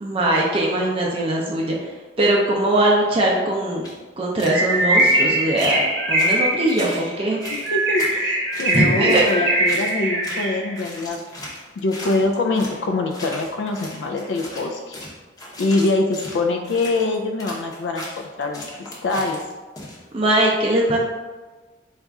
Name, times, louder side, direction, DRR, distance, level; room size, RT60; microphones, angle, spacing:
voice 1, 0.0-1.9 2.2-3.9 4.2-7.4 8.7-9.5 20.1-21.0, right 1 dB, 30° right, -2 dB, 0.4 m, -21 dB
sound 1, 3.8-3.9 4.4-5.2 5.5-5.8 6.2-7.1 7.4-8.2 8.5-9.4 9.6-10.0 10.2-10.5 10.7-12.8 13.1-20.3, left 1 dB, 20° left, 0.7 m, -37 dB
Bird, 4.4-10.8, right 1 dB, 60° right, 0.8 m, -21 dB
voice 2, 7.5-11.2 11.8-14.9 15.6-18.6 19.0-19.4, left 3 dB, 70° left, 3 dB, 0.3 m, -24 dB
4.1 x 2.4 x 3.4 m, 1.3 s
head